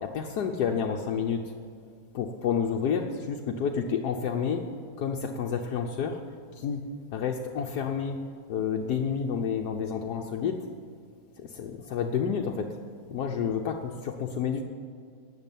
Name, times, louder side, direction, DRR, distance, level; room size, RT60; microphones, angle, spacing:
voice 1, 0.0-1.4 2.1-4.6 5.0-6.2 6.5-6.8 7.1-8.2 8.5-10.6 11.4-12.7 13.1-14.6, left 7 dB, 75° left, 2 dB, 1.3 m, -29 dB
12.0 x 8.9 x 9.1 m, 2.2 s
omnidirectional pair, 1.7 m